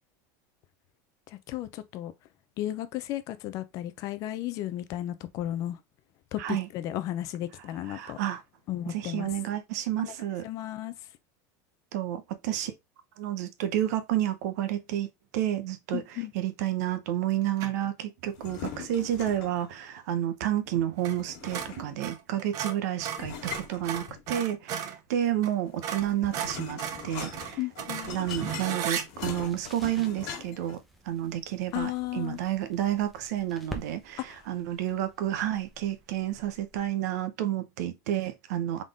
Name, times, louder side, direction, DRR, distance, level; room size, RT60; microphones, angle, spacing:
voice 1, 1.3-2.1 2.6-5.8 6.3-8.2 8.7-9.3 10.0-10.1 10.4-10.9 15.9-16.3 27.6-28.1 31.7-32.4 34.3-34.4, left 14 dB, 35° left, 0.5 m, -34 dB
voice 2, 7.9-8.4 8.9-10.5 11.9-12.7 13.2-15.1 15.3-16.0 16.3-27.6 28.1-38.8, right 12 dB, 70° right, 0.9 m, -30 dB
sound 1, 17.6-17.9 21.0-21.2 21.4-25.0 25.4-25.5 25.8-29.1, right 8 dB, 35° right, 0.7 m, -35 dB
sound 2, 18.3-19.7 21.1-22.1 23.1-24.5 25.7-30.7, left 7 dB, 60° left, 1.7 m, -41 dB
sound 3, 27.5-37.0, right 1 dB, ahead, 0.8 m, -50 dB
4.0 x 3.6 x 3.6 m
supercardioid pair, 170°, 9 cm